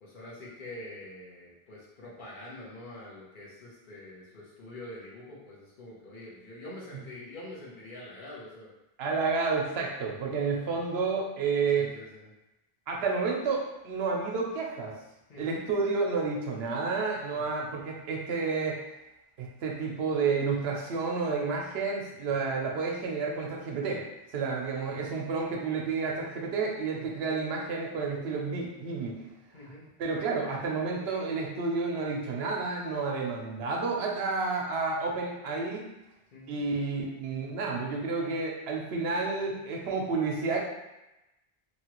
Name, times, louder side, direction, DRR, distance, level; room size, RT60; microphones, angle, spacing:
voice 1, 0.0-8.7 10.6-10.8 11.8-12.3 15.3-15.6 17.3-17.5 22.4-22.5 26.9-27.2 29.5-29.8 36.3-36.6, left 1 dB, 55° left, -6 dB, 1.0 m, -45 dB
voice 2, 9.0-11.9 12.9-14.9 15.4-18.8 19.4-24.0 24.3-29.2 30.0-35.8 36.5-40.6, right 4 dB, 85° right, -1 dB, 0.9 m, -30 dB
3.0 x 2.4 x 2.9 m, 0.96 s
omnidirectional pair, 1.0 m